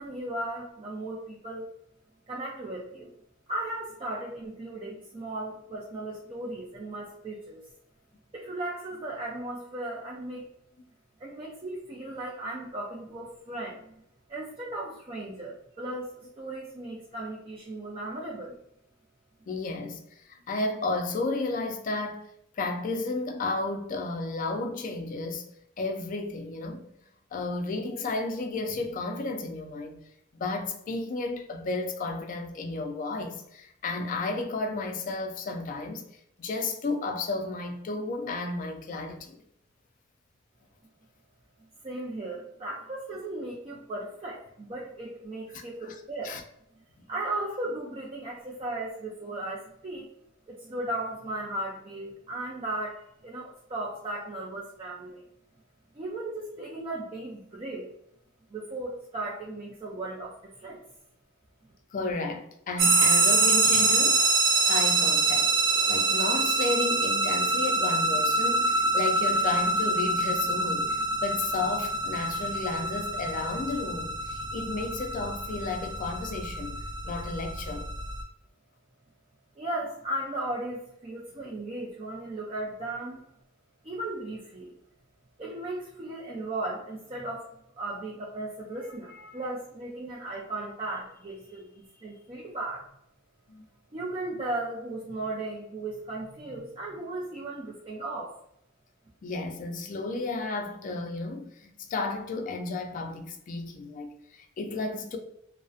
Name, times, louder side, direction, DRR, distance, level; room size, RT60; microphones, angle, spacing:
voice 1, 0.0-1.7 2.3-3.1 3.5-7.6 8.3-10.4 11.2-13.9 14.3-18.6 41.8-46.3 47.1-50.1 50.5-55.2 55.9-57.9 58.5-60.8 79.6-83.2 83.8-84.7 85.4-87.5 87.8-92.9 93.9-98.4, right 2 dB, 30° right, 0.4 m, -36 dB
voice 2, 19.5-22.2 22.5-25.5 25.8-26.8 27.3-30.0 30.4-36.0 36.4-39.4 45.5-45.9 46.2-46.4 61.9-64.2 64.7-65.5 65.9-76.8 77.0-77.9 93.5-93.7 99.2-105.2, left 3 dB, 45° left, 0.3 m, -33 dB
sound 1, 62.8-78.2, right 3 dB, 80° right, 0.7 m, -25 dB
2.5 x 2.1 x 2.4 m
head